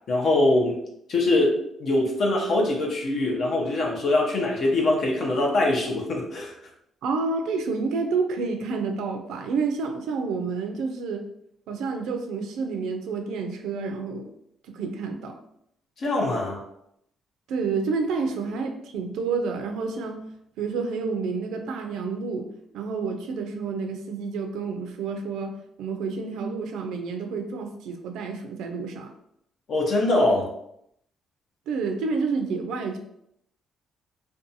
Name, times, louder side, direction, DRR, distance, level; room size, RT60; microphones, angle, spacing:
voice 1, 0.1-0.8 1.1-6.5 16.0-16.6 29.7-30.5, left 2 dB, 60° left, -1 dB, 0.6 m, -23 dB
voice 2, 7.0-11.3 11.7-14.3 14.7-15.4 17.5-20.2 20.6-22.5 22.7-29.1 31.7-33.0, right 4 dB, 85° right, 5 dB, 0.3 m, -29 dB
2.5 x 2.2 x 2.7 m, 0.74 s
cardioid pair, 90°, 0 cm